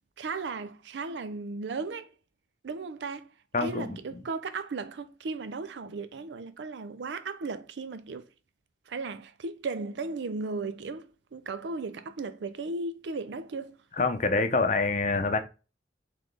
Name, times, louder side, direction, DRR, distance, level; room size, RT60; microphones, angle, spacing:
voice 1, 0.2-2.1 2.6-3.3 3.6-8.3 8.9-13.8, right 3 dB, 80° right, 0.5 m, -36 dB
voice 2, 3.5-4.0 14.0-15.4, left 3 dB, 40° left, 0.6 m, -26 dB
4.1 x 3.2 x 3.2 m
head